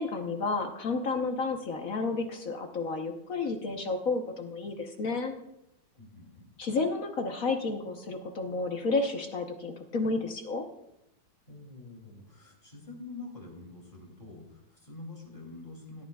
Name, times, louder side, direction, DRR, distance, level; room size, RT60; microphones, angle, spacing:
voice 1, 0.0-5.3 6.6-10.6, left 3 dB, 50° left, 4 dB, 1.2 m, -31 dB
voice 2, 6.0-6.5 11.5-16.0, left 3 dB, 25° left, 0 dB, 3.1 m, -46 dB
17.0 x 13.0 x 2.4 m, 0.82 s
omnidirectional pair, 2.3 m